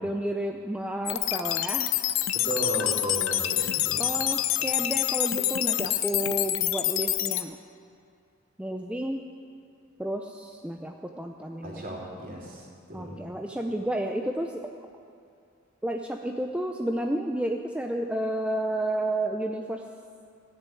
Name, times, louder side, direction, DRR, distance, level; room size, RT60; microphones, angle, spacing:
voice 1, 0.0-1.9 3.6-7.6 8.6-9.2 10.0-11.8 12.9-14.8 15.8-19.8, right 1 dB, 5° right, 3 dB, 0.5 m, -31 dB
sound 1, 1.1-7.4, left 13 dB, 80° left, 0.6 m, -27 dB
voice 2, 2.3-4.0 11.6-13.2, right 1 dB, 45° right, -4 dB, 3.2 m, -35 dB
15.0 x 6.9 x 9.3 m, 2.5 s
head